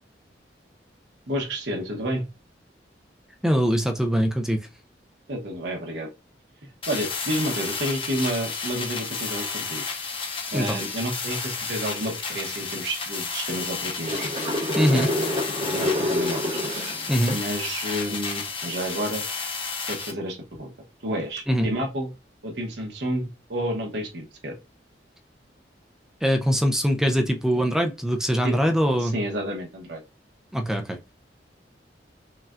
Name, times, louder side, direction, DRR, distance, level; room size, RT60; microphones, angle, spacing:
voice 1, 1.3-2.3 5.3-6.1 6.9-9.8 10.5-14.3 14.9-15.3 15.6-16.5 17.3-19.2 19.9-20.7 21.0-22.1 22.4-24.5 28.4-28.6 28.9-30.0, equal, 75° right, 1.0 m, -30 dB
voice 2, 3.4-4.7 10.5-10.8 14.8-15.1 17.1-17.4 21.5-21.7 26.2-29.2 30.5-31.0, equal, 5° right, 0.4 m, -22 dB
sound 1, 6.8-20.1, left 5 dB, 30° left, 0.6 m, -32 dB
sound 2, 14.0-17.4 21.2-21.4, left 1 dB, 40° right, 1.3 m, -27 dB
5.5 x 2.3 x 2.4 m
head